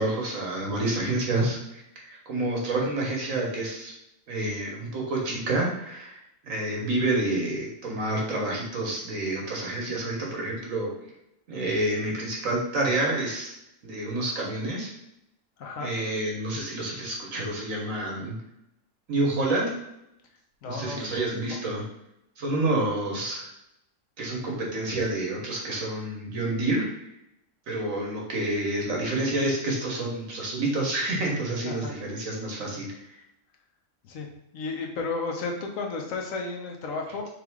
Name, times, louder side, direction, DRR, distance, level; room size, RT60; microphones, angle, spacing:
voice 1, 0.0-3.9 4.3-6.2 6.4-10.9 11.5-13.5 13.8-14.9 15.8-18.4 19.1-19.7 20.6-21.9 22.4-23.5 24.2-27.0 27.7-33.2, right 2 dB, 80° right, -1 dB, 1.5 m, -28 dB
voice 2, 15.6-15.9 20.6-21.6 31.6-31.9 34.0-34.3 34.5-37.3, left 3 dB, 80° left, 2 dB, 1.2 m, -33 dB
3.6 x 3.4 x 3.5 m, 0.82 s
omnidirectional pair, 1.4 m